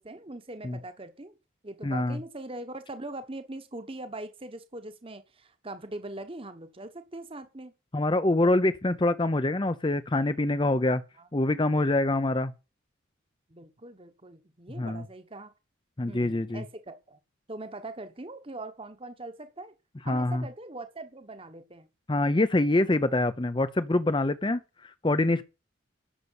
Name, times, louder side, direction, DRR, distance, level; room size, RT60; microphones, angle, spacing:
voice 1, 0.0-1.4 1.6-7.7 11.2-11.3 13.5-15.5 16.1-17.2 17.5-19.7 20.0-21.9, right 2 dB, 25° right, 1.2 m, -41 dB
voice 2, 1.8-2.2 7.9-11.0 11.3-12.5 14.8-15.0 16.0-16.6 20.1-20.4 22.1-25.4, left 2 dB, 25° left, 0.6 m, -25 dB
11.5 x 6.7 x 8.3 m
head